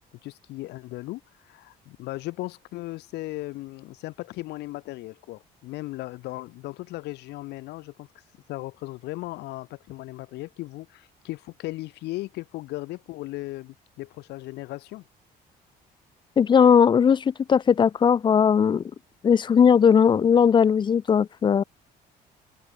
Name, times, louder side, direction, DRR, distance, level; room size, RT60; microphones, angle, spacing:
voice 1, 0.1-8.2 8.5-15.0, left 19 dB, 80° left, 1.0 m, -37 dB
voice 2, 16.4-18.8 19.2-21.6, left 7 dB, 30° left, 0.4 m, -18 dB
cardioid pair, 110°, 17 cm